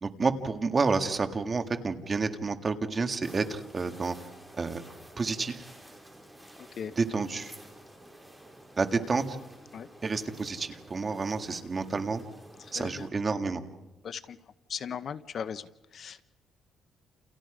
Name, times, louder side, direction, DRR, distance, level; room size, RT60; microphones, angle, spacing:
voice 1, 0.0-4.2 4.6-4.8 5.2-5.6 7.0-7.6 8.8-9.4 10.0-12.2 12.7-13.6, right 4 dB, 30° right, 6 dB, 1.9 m, -29 dB
sound 1, 3.2-13.1, right 1 dB, 5° right, 5.3 m, -51 dB
voice 2, 6.6-6.9 9.7-9.9 12.6-13.1 14.0-16.2, left 7 dB, 50° left, 13 dB, 0.8 m, -39 dB
29.5 x 29.5 x 5.0 m, 1.1 s
cardioid pair, 125°, 0 cm